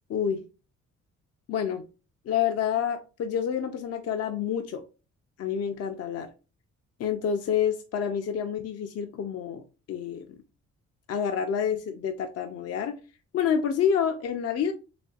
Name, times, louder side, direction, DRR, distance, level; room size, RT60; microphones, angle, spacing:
voice 1, 0.1-0.4 1.5-1.8 2.3-4.8 5.4-6.3 7.0-10.3 11.1-13.0 13.3-14.7, left 8 dB, 55° left, 0.5 m, -28 dB
4.1 x 3.1 x 2.3 m
cardioid pair, 90°, 30 cm